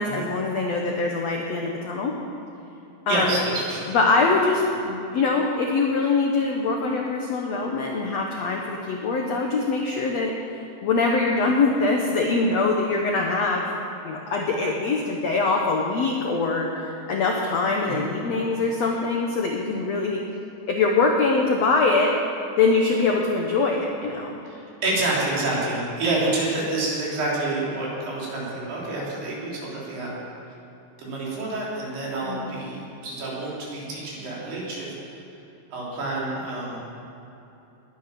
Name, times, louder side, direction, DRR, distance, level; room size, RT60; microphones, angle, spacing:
voice 1, 0.0-2.1 3.1-3.4 3.9-10.3 10.8-13.7 14.0-20.2 20.7-22.2 22.6-24.4 32.2-32.5, left 3 dB, 90° left, 0 dB, 1.4 m, -23 dB
voice 2, 3.1-3.9 17.9-18.1 24.5-30.2 31.0-34.9 35.7-36.8, right 2 dB, 70° right, -5 dB, 5.5 m, -28 dB
20.5 x 10.5 x 6.0 m, 2.9 s
omnidirectional pair, 4.8 m